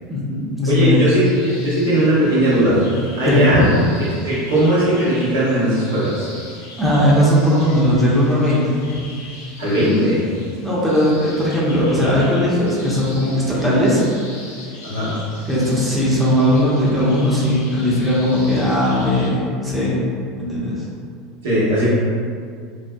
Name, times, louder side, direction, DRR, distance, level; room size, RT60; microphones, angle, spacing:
voice 1, 0.1-1.1 3.2-3.7 6.8-8.8 10.6-14.1 15.5-20.0 20.4-20.8, left 1 dB, 5° right, -8 dB, 0.7 m, -18 dB
voice 2, 0.7-2.8 3.2-3.6 4.2-6.3 9.6-10.2 14.8-15.2 21.4-21.9, right 1 dB, 80° right, -9 dB, 1.0 m, -18 dB
sound 1, 1.2-19.3, left 2 dB, 85° left, 0.7 m, -40 dB
2.5 x 2.4 x 2.2 m, 2.2 s
hypercardioid pair, 85°, 0 cm